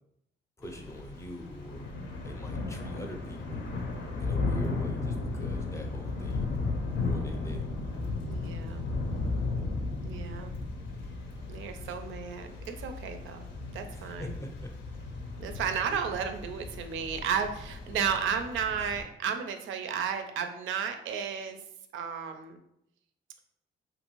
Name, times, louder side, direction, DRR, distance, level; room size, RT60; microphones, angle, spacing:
Thunder / Rain, 0.6-19.0, left 3 dB, 70° left, 0.6 m, -35 dB
voice 1, 0.6-1.9 2.2-3.7 4.2-6.5 6.9-7.6 12.0-12.2 13.9-14.7, equal, 15° left, 3 dB, 0.5 m, -43 dB
voice 2, 8.3-8.9 10.0-10.5 11.5-13.5 13.7-14.3 15.4-21.6 21.9-22.6, right 7 dB, 75° right, 7 dB, 0.4 m, -33 dB
2.7 x 2.6 x 3.0 m, 0.78 s
cardioid pair, 90°, 20 cm